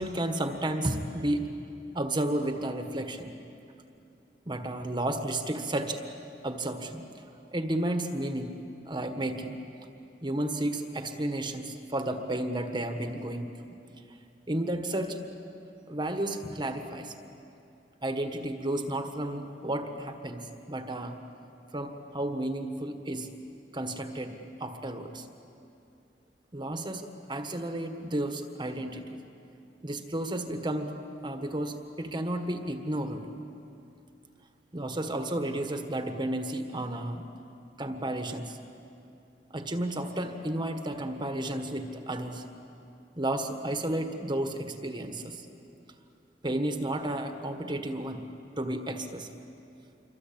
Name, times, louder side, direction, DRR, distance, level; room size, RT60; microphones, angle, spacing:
voice 1, 0.0-1.5 1.9-3.3 4.4-6.0 6.4-7.2 7.5-8.6 8.9-9.6 10.2-13.5 14.5-15.2 15.9-17.1 18.0-20.4 20.7-21.2 21.7-23.3 23.7-25.3 26.5-29.2 29.8-31.0 31.2-33.3 34.7-37.2 37.8-38.6 39.5-42.4 43.2-45.5 46.4-48.3 48.6-49.3, right 1 dB, 25° right, 6 dB, 1.5 m, -32 dB
27.5 x 24.0 x 8.8 m, 2.7 s
head